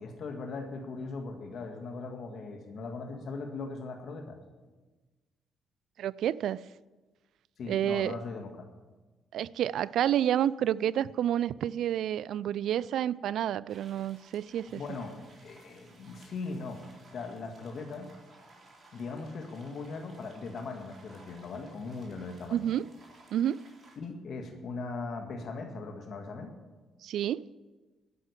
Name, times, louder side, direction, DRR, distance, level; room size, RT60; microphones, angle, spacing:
voice 1, 0.0-4.4 7.6-8.5 14.7-15.1 15.4-18.1 18.9-22.7 24.0-26.5, left 3 dB, 60° left, 1.8 m, -39 dB
voice 2, 6.0-6.6 7.7-8.2 9.3-14.8 22.5-22.9 23.3-23.6 27.0-27.4, right 11 dB, 75° right, 0.3 m, -29 dB
sound 1, 13.7-24.0, right 2 dB, 35° right, 3.8 m, -58 dB
12.5 x 6.5 x 9.7 m
cardioid pair, 90°, 0 cm